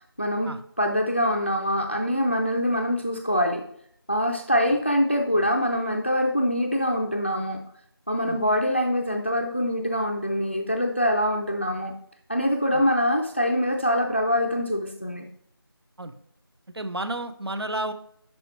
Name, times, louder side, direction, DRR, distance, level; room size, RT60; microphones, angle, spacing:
voice 1, 0.2-0.5 0.8-3.6 4.1-7.6 8.1-11.9 12.3-15.2, equal, 30° left, 3 dB, 0.5 m, -24 dB
voice 2, 16.7-17.9, right 1 dB, 85° right, 10 dB, 0.9 m, -31 dB
11.0 x 4.7 x 3.1 m, 0.67 s
figure-of-eight pair, 175°, 13 cm